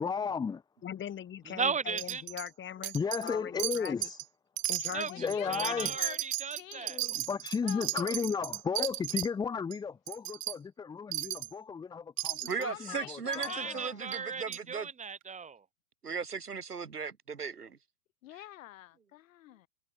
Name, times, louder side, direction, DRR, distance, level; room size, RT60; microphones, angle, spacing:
voice 1, 0.0-0.6 2.9-4.2 5.2-5.9 6.9-13.8, left 6 dB, 10° left, 0.7 m, -34 dB
voice 2, 0.8-2.9 3.2-3.9 4.7-6.0, left 9 dB, 25° left, 6.2 m, -41 dB
voice 3, 1.5-2.2 4.9-5.1 5.5-7.0 13.5-15.6, right 5 dB, 15° right, 3.1 m, -36 dB
Wind chime, 2.0-2.5 2.8-3.3 3.6-4.2 4.6-9.3 9.7-9.8 10.1-10.6 11.1-11.5 12.2-12.6 13.3-13.5 14.1-14.2 14.5-14.6, right 17 dB, 55° right, 3.9 m, -35 dB
voice 4, 5.1-6.2 6.6-6.9 7.6-8.2 12.6-14.1 18.2-19.7, left 15 dB, 60° left, 3.8 m, -45 dB
voice 5, 12.5-14.9 16.0-17.8, right 5 dB, 80° right, 4.2 m, -37 dB
figure-of-eight pair, 95°, 46 cm